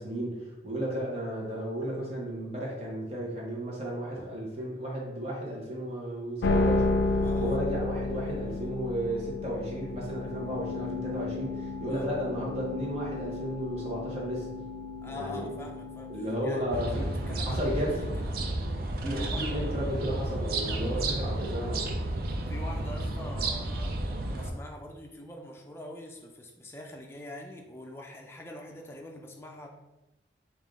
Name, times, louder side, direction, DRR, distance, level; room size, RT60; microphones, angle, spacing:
voice 1, 0.0-14.5 15.0-15.5 16.1-17.1 17.4-18.0 19.0-22.0, equal, 35° right, -4 dB, 1.0 m, -34 dB
sound 1, 6.4-18.7, left 3 dB, 85° left, 0.3 m, -33 dB
voice 2, 7.2-7.6 11.9-12.1 15.0-16.1 16.4-18.4 19.0-19.5 20.6-21.1 22.5-23.9 24.2-29.7, left 1 dB, 15° left, 1 dB, 0.4 m, -44 dB
sound 2, 16.7-24.5, right 2 dB, 55° right, 0.4 m, -32 dB
3.5 x 2.4 x 3.6 m, 1.0 s
head